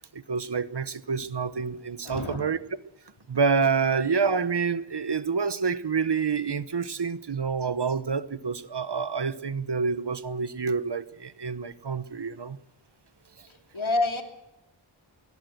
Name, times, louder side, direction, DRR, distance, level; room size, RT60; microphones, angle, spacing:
voice 1, 0.1-2.7 3.3-12.6, right 5 dB, 55° right, 1.1 m, -28 dB
voice 2, 2.0-2.4 13.7-14.2, left 2 dB, 70° left, 2.9 m, -27 dB
22.0 x 17.5 x 7.9 m
wide cardioid pair, 45°, 49 cm